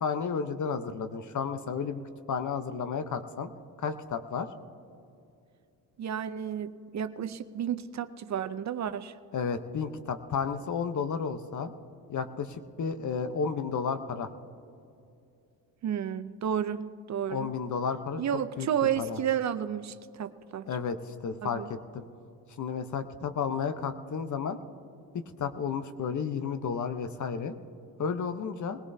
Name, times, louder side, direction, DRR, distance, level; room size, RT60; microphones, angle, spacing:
voice 1, 0.0-2.0 2.3-3.5 3.8-4.5 9.3-11.7 12.1-14.3 17.3-18.7 19.0-19.2 20.7-22.0 22.6-24.6 25.4-27.5 28.0-28.8, left 6 dB, 45° left, 10 dB, 0.9 m, -32 dB
voice 2, 6.0-9.1 15.8-17.5 18.2-20.7 21.4-21.7, right 9 dB, 45° right, 12 dB, 0.6 m, -32 dB
20.5 x 18.0 x 2.7 m, 2.5 s
cardioid pair, 85°, 40 cm